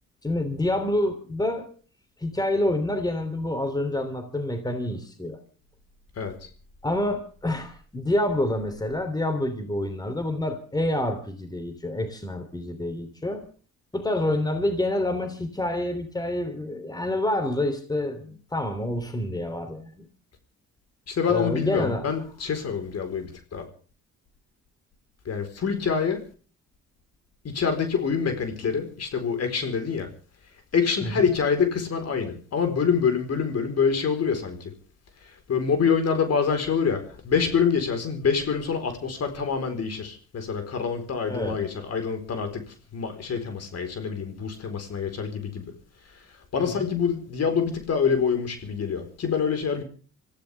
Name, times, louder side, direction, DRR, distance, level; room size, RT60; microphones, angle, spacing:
voice 1, 0.2-1.7 2.2-5.4 6.8-13.4 13.9-20.1 21.3-22.1 31.0-31.3 41.3-41.6 46.6-46.9, left 1 dB, 15° left, 3.2 m, -27 dB
voice 2, 21.1-23.7 25.3-26.2 27.4-30.1 30.7-34.6 35.5-42.6 42.9-45.7 46.5-49.8, left 6 dB, 55° left, 4.4 m, -26 dB
25.5 x 15.5 x 3.5 m
cardioid pair, 90°, 30 cm